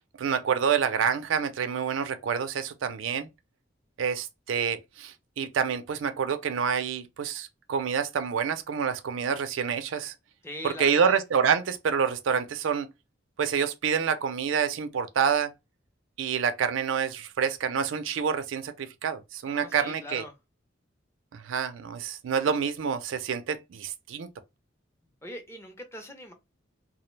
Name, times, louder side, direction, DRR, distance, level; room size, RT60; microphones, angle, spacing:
voice 1, 0.2-3.3 4.0-10.1 10.6-12.9 13.4-15.5 16.2-20.2 21.3-24.3, right 7 dB, 85° right, 0.4 m, -27 dB
voice 2, 10.4-11.2 19.5-20.3 25.2-26.3, left 1 dB, 15° left, 0.5 m, -41 dB
2.3 x 2.0 x 3.1 m
head